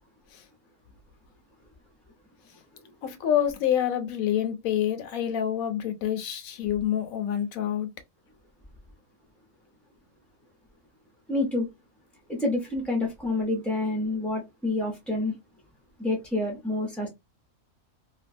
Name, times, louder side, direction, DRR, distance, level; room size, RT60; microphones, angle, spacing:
voice 1, 3.0-7.9, left 10 dB, 75° left, 1.1 m, -27 dB
voice 2, 11.3-11.7 12.3-15.4 16.0-17.1, left 2 dB, ahead, 0.3 m, -28 dB
2.9 x 2.3 x 2.5 m
omnidirectional pair, 1.5 m